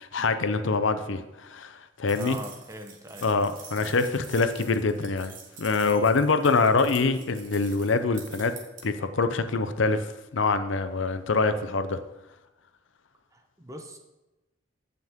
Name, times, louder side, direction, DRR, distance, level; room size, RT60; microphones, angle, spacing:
voice 1, 0.0-2.4 3.2-8.5 8.8-12.0, left 4 dB, 70° left, 10 dB, 0.6 m, -25 dB
voice 2, 2.1-3.3 13.3-14.0, right 1 dB, 15° right, 4 dB, 0.9 m, -41 dB
sound 1, 2.1-8.8, right 6 dB, 40° right, 1.5 m, -47 dB
14.5 x 5.9 x 3.6 m, 1.0 s
head